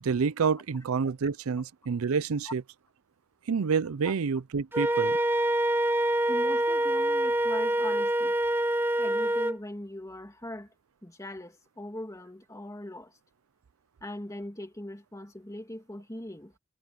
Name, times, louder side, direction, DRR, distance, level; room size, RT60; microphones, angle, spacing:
voice 1, 0.0-2.6 3.5-5.2, right 5 dB, 80° right, 0.5 m, -28 dB
Wind instrument woodwind instrument, 4.7-9.6, right 1 dB, 10° right, 0.8 m, -26 dB
voice 2, 6.3-8.4 9.0-10.7 11.0-13.1 14.0-16.5, left 1 dB, 15° left, 2.7 m, -40 dB
head